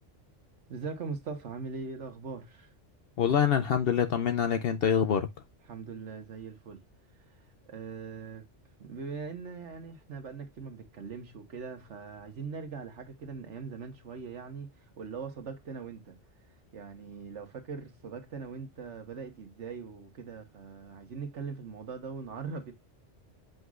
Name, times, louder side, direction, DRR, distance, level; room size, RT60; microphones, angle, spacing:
voice 1, 0.7-2.7 5.7-6.8 7.6-8.5 8.8-14.7 15.0-16.2 16.7-22.7, right 5 dB, 75° right, 1.6 m, -41 dB
voice 2, 3.2-5.3, left 8 dB, 60° left, 0.7 m, -25 dB
8.0 x 5.2 x 2.4 m
omnidirectional pair, 1.2 m